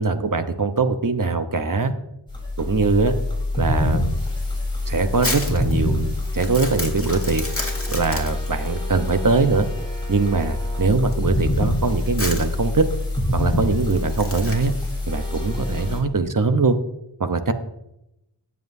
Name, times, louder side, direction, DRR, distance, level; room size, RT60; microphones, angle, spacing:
voice 1, 0.0-1.9 2.6-3.1 3.5-4.0 4.9-7.4 7.9-9.7 10.1-12.9 13.3-14.7 15.1-16.8 17.2-17.5, right 4 dB, 45° right, 8 dB, 0.9 m, -22 dB
sound 1, 2.3-16.0, left 1 dB, 10° left, 3.8 m, -26 dB
Crumpling crinkling, 4.4-14.9, left 2 dB, 30° left, 2.1 m, -33 dB
19.0 x 7.6 x 2.7 m, 0.85 s
wide cardioid pair, 60°, 45 cm